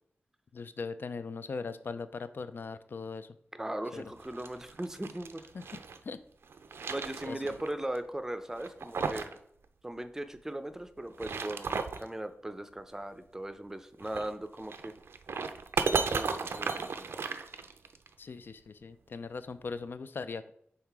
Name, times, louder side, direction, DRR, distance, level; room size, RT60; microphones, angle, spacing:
voice 1, 0.5-3.4 3.9-4.0 5.5-6.2 7.2-7.6 18.2-20.5, left 4 dB, 60° left, 12 dB, 0.4 m, -40 dB
voice 2, 3.5-5.4 6.9-9.4 9.8-14.9 15.8-17.2, right 1 dB, 10° right, 9 dB, 0.5 m, -39 dB
sound 1, 4.2-6.0 6.4-7.7 7.9-8.0 8.6-9.4 9.6-9.7 11.0-12.1 14.0-18.1, right 5 dB, 80° right, 0.4 m, -35 dB
5.6 x 3.7 x 4.6 m, 0.70 s
wide cardioid pair, 100°, 4 cm